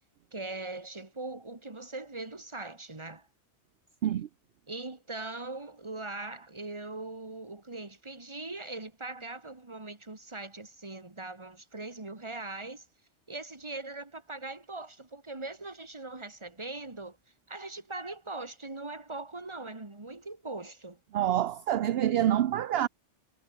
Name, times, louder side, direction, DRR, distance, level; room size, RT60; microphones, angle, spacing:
voice 1, 0.3-3.3 4.7-12.9 13.3-17.2 17.5-21.0, right 2 dB, 25° right, 2.0 m, -41 dB
voice 2, 21.1-22.9, right 11 dB, 65° right, 0.8 m, -26 dB
omnidirectional pair, 1.2 m